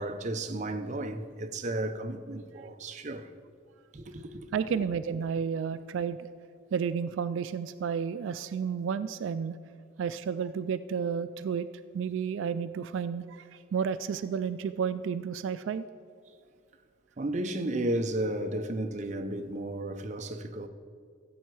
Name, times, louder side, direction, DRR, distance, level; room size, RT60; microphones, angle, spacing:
voice 1, 0.0-3.3 3.9-4.6 17.2-20.7, right 1 dB, 40° right, 0.6 m, -33 dB
voice 2, 4.5-6.3 6.7-9.6 10.0-11.7 11.9-15.9, right 7 dB, 80° right, 0.3 m, -31 dB
15.0 x 7.8 x 4.7 m
head